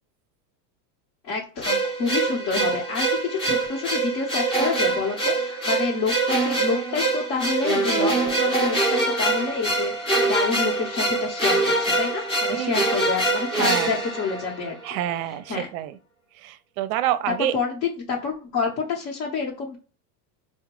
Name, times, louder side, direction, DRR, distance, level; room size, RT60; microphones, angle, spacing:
voice 1, 1.2-15.0 15.5-15.7 17.5-19.8, left 5 dB, 45° left, 1.0 m, -28 dB
sound 1, 1.6-14.9, right 2 dB, 10° left, 0.7 m, -24 dB
voice 2, 12.5-12.9 13.5-14.0 14.8-16.0 16.4-17.6, right 12 dB, 55° right, 0.5 m, -27 dB
4.7 x 2.2 x 3.0 m
supercardioid pair, 155°, 49 cm